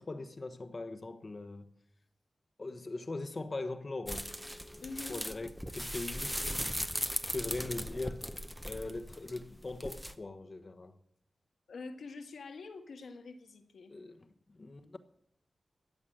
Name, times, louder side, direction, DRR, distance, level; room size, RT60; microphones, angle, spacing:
voice 1, 0.0-1.7 2.6-4.4 4.7-6.8 7.3-8.3 8.6-11.0 13.9-15.0, left 2 dB, 35° left, 1.1 m, -41 dB
sound 1, 4.1-10.1, equal, ahead, 0.7 m, -38 dB
voice 2, 4.8-5.2 11.7-13.9, left 4 dB, 90° left, 1.6 m, -45 dB
14.0 x 9.2 x 7.8 m
wide cardioid pair, 155°, 0 cm